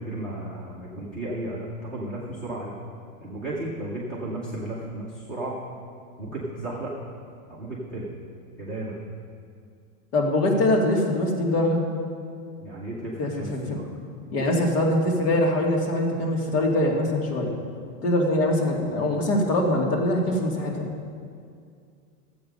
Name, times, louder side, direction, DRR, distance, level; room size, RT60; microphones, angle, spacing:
voice 1, 0.0-2.7 3.2-5.6 6.2-6.9 7.5-8.1 8.6-9.0 12.6-13.9, right 1 dB, ahead, -6 dB, 0.4 m, -34 dB
voice 2, 10.1-11.8 13.2-13.8 14.3-17.5 18.0-20.8, left 1 dB, 75° left, -1 dB, 2.5 m, -23 dB
12.0 x 7.8 x 5.4 m, 2.3 s
supercardioid pair, 165°, 46 cm